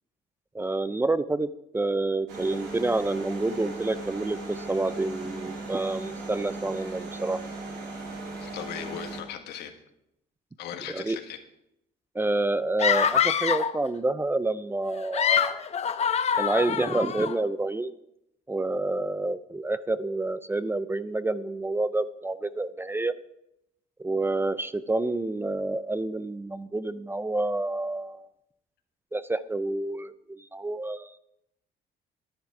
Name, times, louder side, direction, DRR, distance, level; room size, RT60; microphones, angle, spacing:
voice 1, 0.5-1.5 1.7-7.4 10.9-11.2 12.1-15.6 16.3-17.9 18.5-23.1 24.0-28.3 29.1-31.1, right 2 dB, 15° right, 15 dB, 0.4 m, -28 dB
sound 1, 2.3-9.2, right 3 dB, 80° right, 2.8 m, -38 dB
voice 2, 8.4-9.7 10.6-11.4, left 9 dB, 80° left, 5 dB, 1.5 m, -38 dB
sound 2, 12.8-13.8 14.9-17.3, left 8 dB, 40° left, 0.7 m, -25 dB
11.0 x 10.0 x 4.8 m, 0.82 s
cardioid pair, 110°, 17 cm